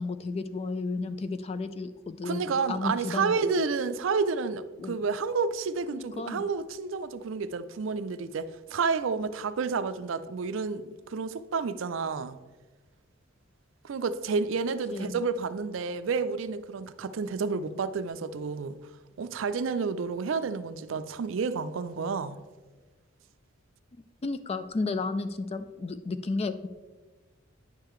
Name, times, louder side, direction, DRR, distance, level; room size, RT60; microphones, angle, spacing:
voice 1, 0.0-3.7 4.8-5.0 5.9-6.4 14.9-15.2 24.2-26.7, left 3 dB, 30° left, 0.4 m, -33 dB
voice 2, 2.2-12.4 13.8-18.8 19.2-22.4, right 5 dB, 70° right, 0.4 m, -30 dB
9.6 x 6.7 x 3.1 m
head